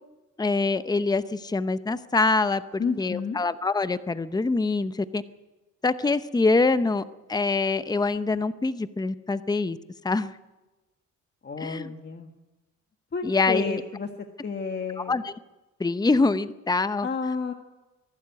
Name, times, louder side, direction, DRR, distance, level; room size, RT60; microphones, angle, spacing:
voice 1, 0.4-5.2 5.8-7.0 7.3-9.8 10.0-10.4 11.6-11.9 13.2-13.8 15.0-15.3 15.8-17.1, left 3 dB, 15° left, 13 dB, 0.8 m, -25 dB
voice 2, 2.8-3.4 11.4-12.3 13.1-14.1 14.4-15.2 17.0-17.5, left 5 dB, 35° left, 5 dB, 1.6 m, -30 dB
23.0 x 12.0 x 9.5 m, 1.1 s
cardioid pair, 90°, 30 cm